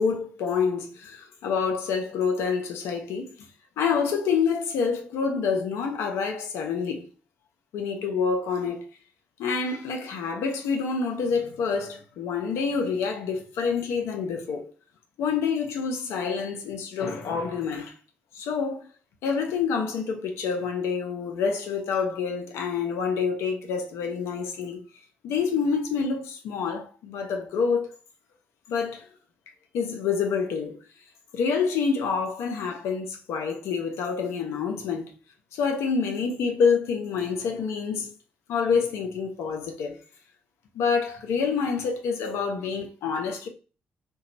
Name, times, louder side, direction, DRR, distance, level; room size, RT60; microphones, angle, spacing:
voice 1, 0.0-3.4 3.8-7.1 7.7-8.8 9.4-14.7 15.2-17.9 18.3-18.9 19.2-24.8 25.2-28.0 28.7-29.1 29.7-30.8 31.3-35.1 35.5-38.1 38.5-40.0 40.7-43.5, left 5 dB, 70° left, 0.5 m, -27 dB
2.8 x 2.2 x 2.6 m
hypercardioid pair, 40°, 5 cm